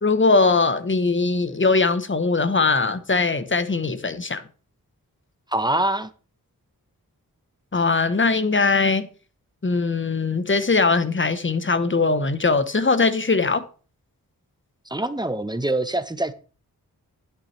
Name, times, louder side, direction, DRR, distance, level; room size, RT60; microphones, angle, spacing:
voice 1, 0.0-4.4 7.7-9.1 9.6-13.6, left 3 dB, 35° left, 1.0 m, -21 dB
voice 2, 5.5-6.1 14.9-16.3, right 1 dB, 10° right, 0.9 m, -24 dB
10.5 x 9.0 x 3.3 m
cardioid pair, 45°, 36 cm